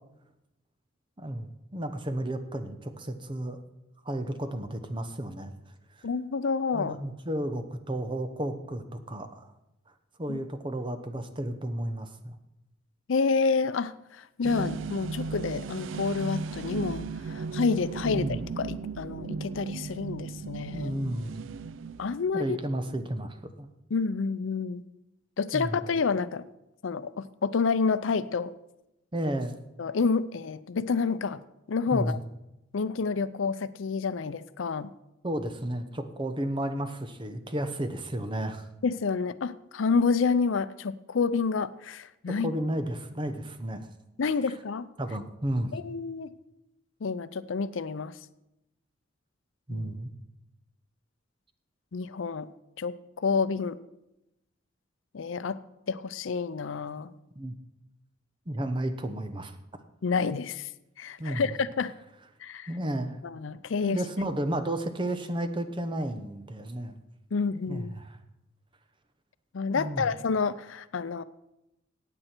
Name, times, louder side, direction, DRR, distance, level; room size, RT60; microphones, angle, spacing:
voice 1, 1.2-3.6 4.0-5.5 6.7-9.5 10.2-12.3 18.0-18.4 20.7-21.4 22.3-23.7 25.5-25.8 29.1-29.6 31.9-32.2 35.2-38.7 42.4-43.9 45.0-45.7 49.7-50.1 57.4-57.5 58.5-59.5 61.2-61.5 62.7-63.2 63.8-67.0 67.7-68.2 69.7-70.1, right 1 dB, 25° right, 8 dB, 0.9 m, -32 dB
voice 2, 6.0-7.0 10.3-10.4 13.1-20.9 22.0-22.6 23.9-24.8 25.4-26.4 26.8-28.5 29.8-31.4 31.7-32.2 32.7-34.9 38.8-42.5 44.2-44.9 45.7-46.3 47.0-48.1 49.7-49.9 51.9-52.5 52.8-53.8 55.1-55.6 55.9-57.1 60.0-60.7 61.0-61.9 62.4-62.7 63.2-64.0 67.3-67.9 69.5-71.2, left 5 dB, 80° left, 14 dB, 0.5 m, -29 dB
sound 1, 14.4-22.3, right 5 dB, 75° right, 0.4 m, -36 dB
15.5 x 8.9 x 4.5 m, 0.90 s
head